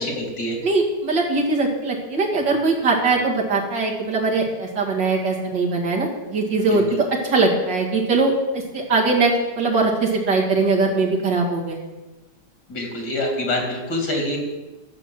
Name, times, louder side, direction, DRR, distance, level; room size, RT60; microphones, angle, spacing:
voice 1, 0.0-0.6 6.6-7.0 12.7-14.4, left 1 dB, 85° left, 1 dB, 3.1 m, -26 dB
voice 2, 0.6-11.8, right 3 dB, 85° right, -2 dB, 2.9 m, -21 dB
12.5 x 6.1 x 7.7 m, 1.1 s
omnidirectional pair, 1.9 m